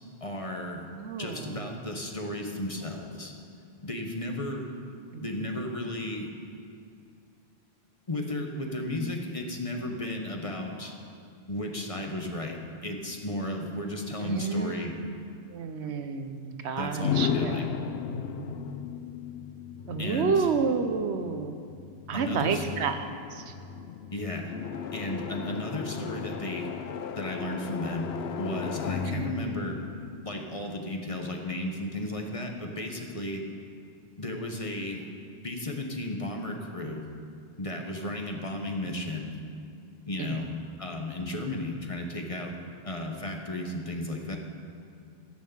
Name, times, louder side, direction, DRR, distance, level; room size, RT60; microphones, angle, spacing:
voice 1, 0.2-0.9 1.2-3.3 3.8-4.7 5.2-6.3 8.1-10.9 11.5-14.9 16.8-17.7 20.0-20.5 22.1-22.6 24.1-24.5 24.9-26.7 27.2-29.8 30.2-33.4 34.2-35.1 35.4-37.0 37.6-39.3 40.1-40.5 40.8-42.6 42.8-44.4, left 1 dB, 35° left, 2 dB, 1.0 m, -34 dB
voice 2, 0.9-1.8 5.1-5.6 14.2-15.1 15.5-17.6 19.9-21.6 22.1-23.1 23.3-23.5 29.0-29.3 40.2-40.4, right 5 dB, 85° right, 8 dB, 1.0 m, -30 dB
sound 1, 17.0-30.8, left 7 dB, 75° left, 0.9 m, -35 dB
14.0 x 6.3 x 7.1 m, 2.4 s
omnidirectional pair, 1.1 m